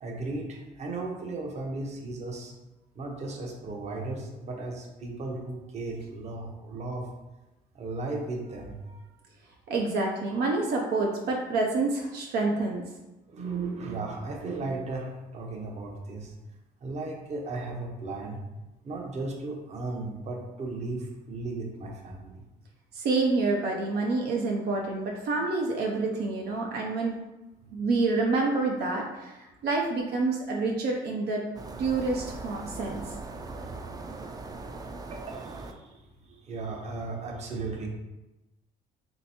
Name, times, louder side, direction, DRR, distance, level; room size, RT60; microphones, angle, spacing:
voice 1, 0.0-2.5 3.0-7.1 7.7-9.0 13.3-16.3 16.8-18.4 18.8-22.4 33.4-33.7 35.1-37.9, right 3 dB, 40° right, 0 dB, 0.9 m, -36 dB
voice 2, 9.7-12.8 22.9-27.1 27.7-31.4 31.8-33.1, right 3 dB, 70° right, 0 dB, 0.6 m, -28 dB
sound 1, 31.6-35.7, right 3 dB, 20° right, 0.4 m, -40 dB
3.3 x 3.0 x 4.2 m, 1.0 s
cardioid pair, 110°, 17 cm